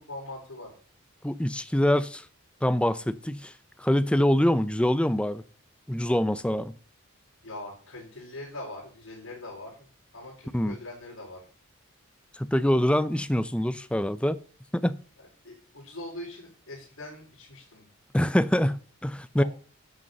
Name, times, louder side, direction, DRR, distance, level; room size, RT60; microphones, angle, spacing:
voice 1, 0.1-0.7 7.4-9.9 10.1-11.4 15.2-17.9 19.4-19.5, left 1 dB, 75° left, 4.9 m, -42 dB
voice 2, 1.2-2.2 2.6-3.5 3.8-5.4 5.9-6.7 10.5-10.8 12.3-14.4 14.7-15.0 18.1-19.4, left 1 dB, 5° left, 0.6 m, -25 dB
11.0 x 8.1 x 6.8 m
head